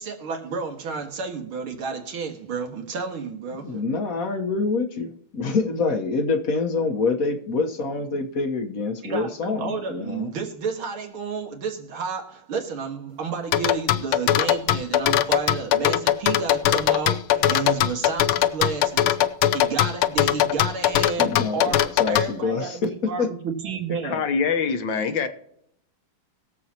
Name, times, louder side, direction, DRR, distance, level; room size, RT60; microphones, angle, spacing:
voice 1, 0.0-3.8 9.0-19.3 19.5-24.2, right 5 dB, 80° right, 3 dB, 2.6 m, -31 dB
voice 2, 3.5-10.3 21.2-23.3, left 4 dB, 50° left, 5 dB, 1.3 m, -26 dB
sound 1, 13.5-22.3, left 12 dB, 80° left, 1.5 m, -20 dB
voice 3, 24.0-25.3, left 6 dB, 65° left, 8 dB, 1.8 m, -24 dB
22.0 x 7.6 x 2.9 m, 0.73 s
omnidirectional pair, 2.3 m